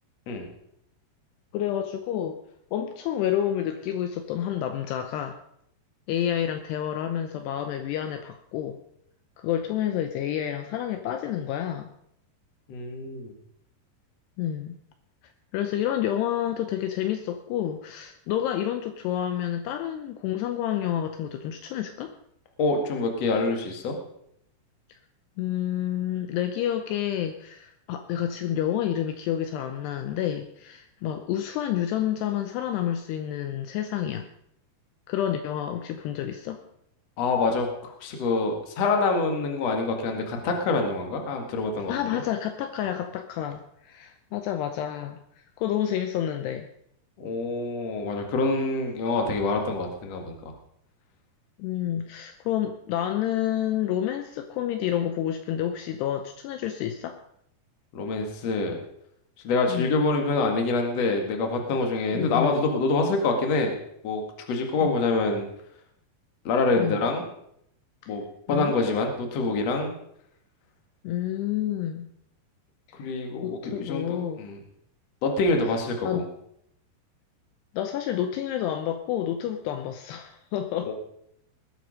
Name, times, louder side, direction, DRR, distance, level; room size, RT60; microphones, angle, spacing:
voice 1, 1.5-2.4 2.7-5.4 6.1-8.8 9.4-11.9 14.4-14.7 15.5-22.1 24.9-25.0 25.4-34.3 35.1-36.6 41.9-45.2 45.6-46.7 51.6-57.2 59.7-60.0 62.1-62.6 64.8-64.9 66.8-67.0 68.0-68.1 68.5-68.7 71.0-72.1 73.0-74.5 76.0-76.3 77.7-80.9, left 11 dB, 80° left, 7 dB, 2.7 m, -29 dB
voice 2, 12.7-13.3 22.6-23.9 37.2-42.2 47.2-50.3 57.9-58.7 59.4-63.7 64.0-64.2 64.5-65.5 66.4-67.2 68.1-68.2 68.5-69.9 72.9-74.6 75.2-76.2 80.9-81.0, left 3 dB, 45° left, 3 dB, 2.4 m, -26 dB
20.0 x 8.3 x 5.2 m, 0.73 s
omnidirectional pair, 5.1 m